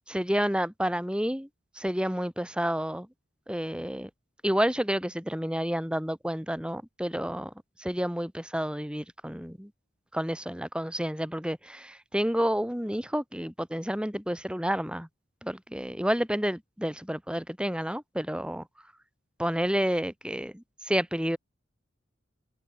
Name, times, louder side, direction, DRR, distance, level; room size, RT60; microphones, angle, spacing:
voice 1, 0.1-1.5 1.8-3.1 3.5-4.1 4.4-7.5 7.8-9.7 10.1-15.1 15.4-18.6 19.4-21.4, equal, 5° right, 5.0 m, -30 dB
open air
head